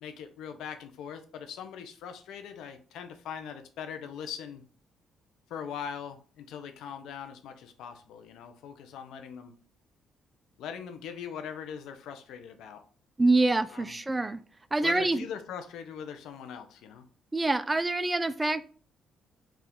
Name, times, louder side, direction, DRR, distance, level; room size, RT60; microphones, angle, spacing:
voice 1, 0.0-4.6 5.5-9.5 10.6-12.8 13.7-14.0 14.8-17.0, left 7 dB, 85° left, 7 dB, 0.6 m, -41 dB
voice 2, 13.2-14.4 14.7-15.2 17.3-18.6, right 2 dB, 20° right, 11 dB, 0.4 m, -25 dB
4.8 x 2.4 x 3.5 m, 0.41 s
cardioid pair, 90°, 0 cm